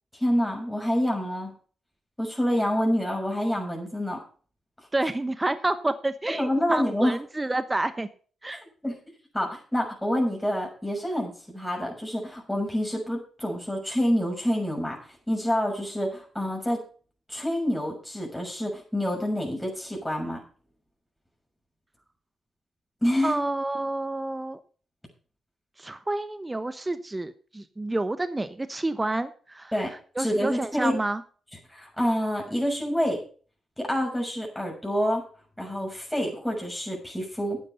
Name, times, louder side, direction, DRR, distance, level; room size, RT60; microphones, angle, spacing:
voice 1, 0.1-1.5 2.2-4.2 6.4-7.1 8.5-9.0 9.3-16.8 17.3-20.4 23.0-23.4 29.7-29.9 30.2-31.0 31.7-33.2 33.8-35.2 35.6-37.6, equal, 5° left, -1 dB, 6.4 m, -27 dB
voice 2, 4.9-8.1 8.4-8.6 23.2-24.6 25.8-29.7 30.2-31.2, right 2 dB, 20° right, 12 dB, 1.0 m, -29 dB
11.0 x 9.1 x 5.6 m, 0.41 s
hypercardioid pair, 45°, 0 cm